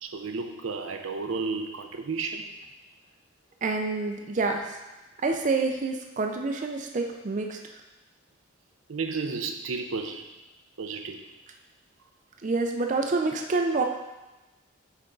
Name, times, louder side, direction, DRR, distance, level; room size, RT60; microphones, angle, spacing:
voice 1, 0.0-2.5 8.9-10.3 10.8-11.2, right 4 dB, 85° right, 5 dB, 0.6 m, -32 dB
voice 2, 3.6-4.8 5.2-7.6 12.4-13.8, right 3 dB, 40° right, 3 dB, 0.4 m, -27 dB
8.4 x 3.5 x 3.8 m, 1.1 s
head